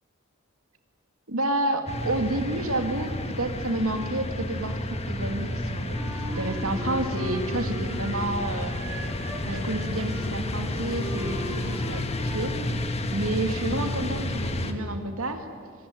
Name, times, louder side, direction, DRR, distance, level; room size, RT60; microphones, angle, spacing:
voice 1, 1.3-8.7 9.5-12.5 13.1-15.5, right 1 dB, 80° right, 6 dB, 2.2 m, -30 dB
sound 1, 1.9-14.7, left 1 dB, 30° left, 1.6 m, -31 dB
Wind instrument woodwind instrument, 5.9-8.3 8.7-12.7, right 1 dB, 15° right, 5.0 m, -40 dB
24.5 x 19.0 x 9.3 m, 2.1 s
head